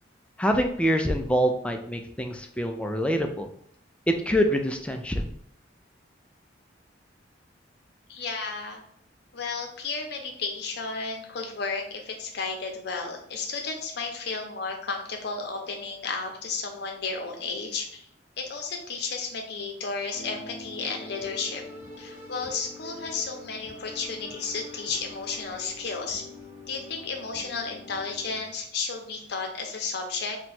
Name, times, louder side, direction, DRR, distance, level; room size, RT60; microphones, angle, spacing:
voice 1, 0.4-3.5 4.1-5.3, equal, 5° left, 4 dB, 0.3 m, -25 dB
voice 2, 8.1-8.8 9.3-18.1 18.4-21.6 22.0-26.3 26.7-30.4, left 4 dB, 60° left, 2 dB, 0.7 m, -33 dB
sound 1, 20.1-28.4, left 2 dB, 15° right, 0.7 m, -44 dB
2.9 x 2.2 x 4.2 m, 0.66 s
head